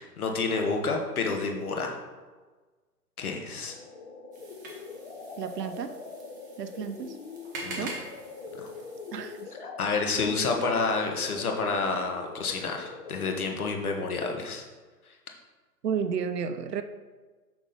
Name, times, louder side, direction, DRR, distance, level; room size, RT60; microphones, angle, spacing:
voice 1, 0.0-2.0 3.2-3.7 7.6-7.9 8.5-8.7 9.6-14.6, left 4 dB, 60° left, 3 dB, 1.5 m, -29 dB
sound 1, 3.5-13.5, left 4 dB, 40° left, 0.9 m, -43 dB
sound 2, 4.3-9.5, right 3 dB, 10° right, 0.6 m, -44 dB
voice 2, 5.4-5.9 6.6-7.2 7.8-8.0 9.1-9.5 15.8-16.8, right 7 dB, 75° right, 10 dB, 0.7 m, -32 dB
6.1 x 6.0 x 4.2 m, 1.3 s
figure-of-eight pair, 135°, 48 cm